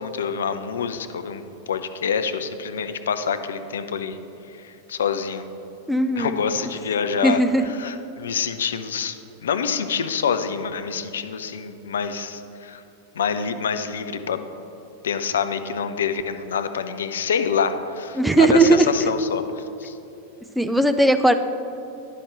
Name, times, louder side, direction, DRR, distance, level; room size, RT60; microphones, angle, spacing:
voice 1, 0.0-4.2 4.6-5.5 6.2-12.8 13.2-14.4 15.0-19.4 19.8-19.9, left 6 dB, 65° left, 9 dB, 0.4 m, -26 dB
voice 2, 5.9-6.4 7.2-7.6 18.2-18.9 20.6-21.3, right 2 dB, ahead, 8 dB, 0.4 m, -17 dB
10.0 x 5.7 x 3.3 m, 2.8 s
figure-of-eight pair, 90°, 0 cm